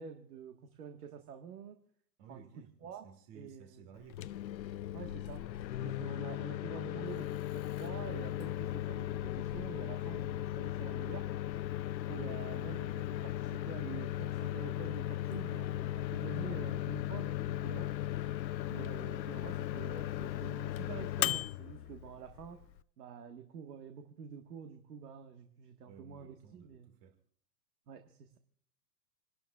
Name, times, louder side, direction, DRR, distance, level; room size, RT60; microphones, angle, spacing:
voice 1, 0.0-1.8 2.3-2.5 2.8-3.1 3.3-3.9 4.9-5.4 5.8-11.3 12.1-17.9 18.7-22.6 23.0-26.9 27.9-28.4, right 7 dB, 65° right, 5 dB, 1.7 m, -48 dB
voice 2, 2.2-4.4 25.8-27.2, right 7 dB, 45° right, 5 dB, 2.1 m, -57 dB
Microwave oven, 4.0-22.8, left 13 dB, 85° left, 0.6 m, -37 dB
29.0 x 12.0 x 2.4 m, 0.65 s
hypercardioid pair, 125°, 50 cm